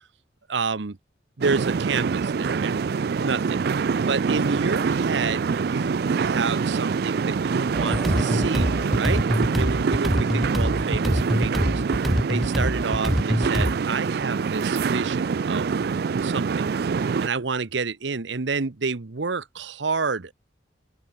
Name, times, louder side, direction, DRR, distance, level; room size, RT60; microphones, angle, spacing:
voice 1, 0.5-1.0 1.4-2.9 3.2-15.7 16.2-16.7 17.2-20.3, right 4 dB, 70° right, 0.9 m, -29 dB
sound 1, 1.4-17.3, right 5 dB, 55° right, 0.4 m, -25 dB
sound 2, 7.7-13.7, equal, ahead, 0.6 m, -24 dB
open air
head